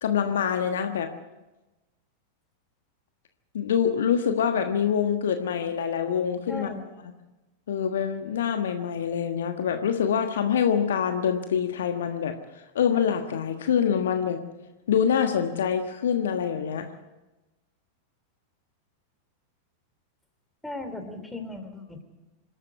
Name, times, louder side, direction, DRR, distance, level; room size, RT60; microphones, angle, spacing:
voice 1, 0.0-1.1 3.5-6.7 7.7-12.3 12.7-14.4 14.9-16.9, left 8 dB, 60° left, 6 dB, 1.4 m, -25 dB
voice 2, 6.5-6.8 20.6-22.0, left 2 dB, 5° left, 6 dB, 3.1 m, -37 dB
26.5 x 12.5 x 8.1 m, 1.1 s
figure-of-eight pair, 90°, 0 cm